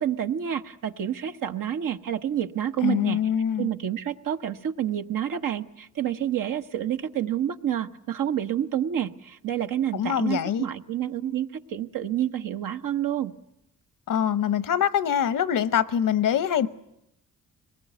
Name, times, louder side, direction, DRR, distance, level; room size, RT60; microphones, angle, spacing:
voice 1, 0.0-3.2 3.6-13.3, right 10 dB, 80° right, 1.1 m, -28 dB
voice 2, 2.8-3.7 9.9-10.7 14.1-16.7, left 9 dB, 75° left, 1.0 m, -24 dB
22.5 x 19.5 x 9.3 m
cardioid pair, 65°, 32 cm